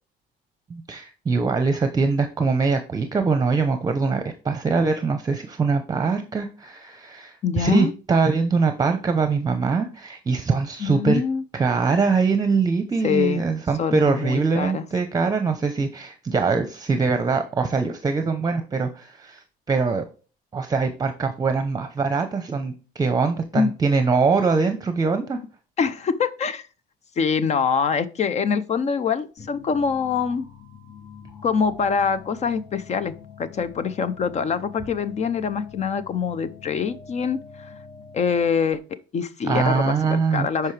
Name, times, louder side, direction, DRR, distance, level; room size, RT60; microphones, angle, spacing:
voice 1, 0.7-11.2 11.5-20.0 20.5-25.4 39.5-40.7, right 4 dB, 20° right, 8 dB, 0.8 m, -23 dB
voice 2, 7.4-7.9 10.8-11.4 13.0-13.4 13.8-14.8 23.5-23.7 25.8-26.7 27.2-30.5 31.4-37.7 38.1-38.8 39.1-40.7, left 6 dB, 40° left, 14 dB, 0.6 m, -24 dB
sound 1, 29.4-38.6, left 7 dB, 75° left, 3.6 m, -45 dB
10.5 x 4.7 x 3.3 m, 0.35 s
cardioid pair, 110°, 17 cm